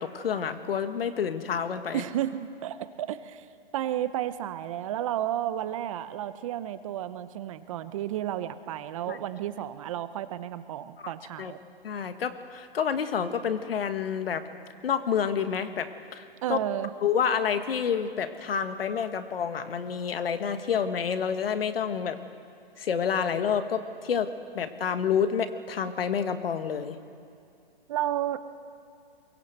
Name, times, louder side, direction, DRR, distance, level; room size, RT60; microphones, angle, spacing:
voice 1, 0.0-2.0 9.1-9.2 11.0-11.1 11.4-11.5 11.8-14.4 14.8-16.6 17.0-22.2 22.8-27.0, left 7 dB, 70° left, 10 dB, 1.6 m, -29 dB
voice 2, 1.9-3.5 3.7-11.6 16.4-16.9 27.9-28.4, right 12 dB, 35° right, 12 dB, 0.7 m, -32 dB
23.0 x 17.0 x 8.0 m, 2.4 s
hypercardioid pair, 150°, 30 cm